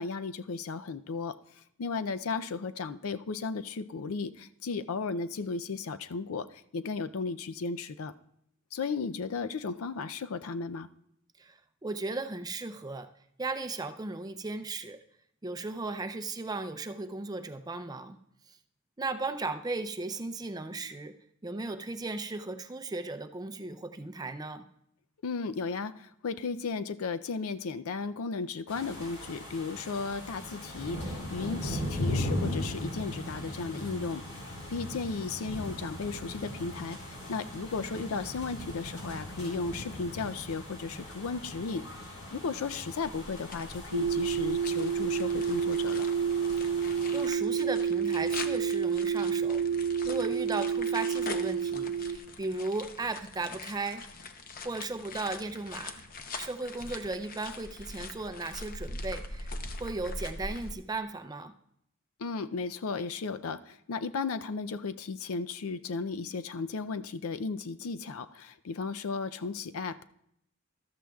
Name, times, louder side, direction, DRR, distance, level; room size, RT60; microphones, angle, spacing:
voice 1, 0.0-1.4 1.8-8.1 8.7-10.9 25.2-46.1 62.2-70.0, left 4 dB, 90° left, 12 dB, 0.5 m, -35 dB
voice 2, 11.4-13.1 13.4-15.0 15.4-18.2 19.0-21.1 21.4-24.6 46.6-46.7 47.1-49.6 50.0-54.0 54.6-56.1 56.3-61.5, right 3 dB, 20° right, 9 dB, 0.5 m, -36 dB
sound 1, 28.7-47.3, left 1 dB, 65° left, 4.2 m, -39 dB
sound 2, 42.9-60.7, left 3 dB, 45° left, 0.7 m, -43 dB
sound 3, 43.9-52.2, right 7 dB, 65° right, 0.8 m, -29 dB
13.5 x 13.0 x 2.3 m, 0.73 s
head